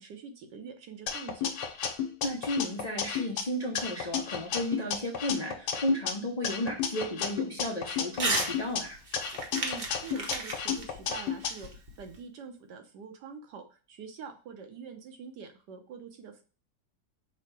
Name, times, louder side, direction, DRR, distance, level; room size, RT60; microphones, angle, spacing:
voice 1, 0.0-1.5 9.6-16.4, right 6 dB, 85° right, 5 dB, 1.4 m, -45 dB
sound 1, 1.1-3.4 3.8-6.1 6.4-8.8 9.1-11.5, left 7 dB, 80° left, 1.3 m, -32 dB
voice 2, 2.2-9.0, equal, 55° left, -2 dB, 0.4 m, -33 dB
Crumpling crinkling / Tearing, 8.1-8.5 8.8-12.2, right 2 dB, 40° right, 0.7 m, -34 dB
5.5 x 2.1 x 4.5 m, 0.37 s
omnidirectional pair, 1.8 m